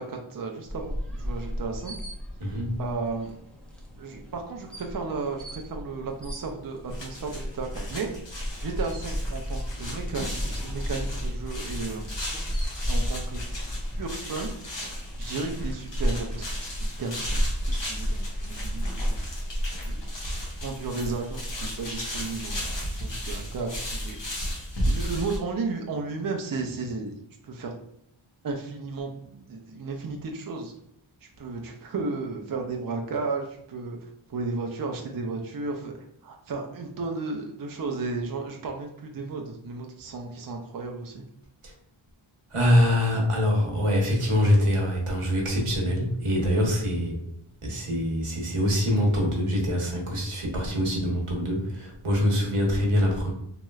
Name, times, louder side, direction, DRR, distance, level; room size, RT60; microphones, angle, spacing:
voice 1, 0.0-1.9 2.8-3.4 4.0-8.1 8.6-12.1 12.9-13.4 14.0-14.5 15.2-19.2 19.8-20.1 20.6-24.2 24.9-27.2 27.4-27.7 28.4-30.7 31.2-34.0 34.3-35.9 36.2-41.2, right 3 dB, 45° right, 2 dB, 0.5 m, -34 dB
sound 1, 0.6-16.6, equal, ahead, 0.6 m, -35 dB
voice 2, 2.4-2.8 41.6-41.7 42.5-47.2 47.6-53.3, equal, 85° right, -1 dB, 1.0 m, -24 dB
sound 2, 6.9-25.4, equal, 60° left, 1.0 m, -32 dB
3.0 x 2.9 x 2.3 m, 0.73 s
wide cardioid pair, 65°, 50 cm